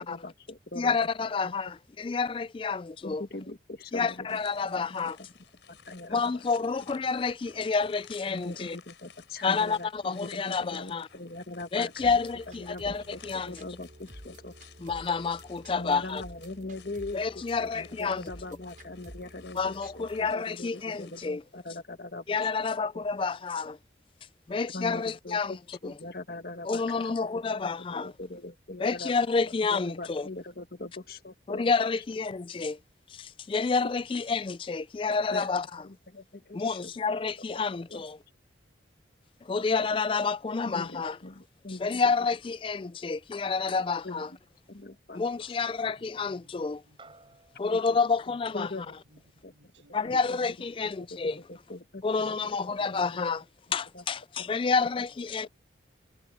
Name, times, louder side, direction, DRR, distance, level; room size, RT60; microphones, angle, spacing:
voice 1, 0.0-1.1 1.4-1.5 3.0-4.4 4.8-5.3 5.7-6.4 8.3-12.2 12.5-13.2 13.5-14.5 15.7-17.2 17.6-22.5 22.9-23.0 24.7-25.6 25.8-27.1 27.4-31.7 35.3-36.9 37.5-37.6 37.9-38.0 40.6-42.0 44.0-44.4 44.7-45.2 47.6-47.8 48.5-48.8 49.4-49.5 50.0-50.4 50.8-52.4 52.9-53.3 53.9-54.0 54.6-54.7, left 2 dB, 55° left, 1.5 m, -41 dB
voice 2, 0.8-3.2 3.9-5.2 6.1-8.8 9.4-11.1 11.7-13.6 14.8-16.2 17.1-18.2 19.6-21.4 22.3-23.8 24.5-25.5 25.8-25.9 26.7-28.1 28.8-30.3 31.5-32.8 33.1-35.8 36.5-38.2 39.4-41.2 41.8-44.3 45.1-46.8 47.6-48.7 49.9-51.4 52.0-53.4 53.7-55.5, left 4 dB, 30° left, 0.3 m, -29 dB
sound 1, 4.3-21.3, left 7 dB, 80° left, 4.4 m, -56 dB
sound 2, 12.0-20.3, right 1 dB, 45° right, 7.7 m, -50 dB
voice 3, 45.6-47.4 48.3-50.2 52.2-53.4 54.8-55.2 55.4-55.5, right 1 dB, 85° right, 7.8 m, -62 dB
sound 3, 47.0-51.6, right 3 dB, 30° right, 5.6 m, -60 dB
head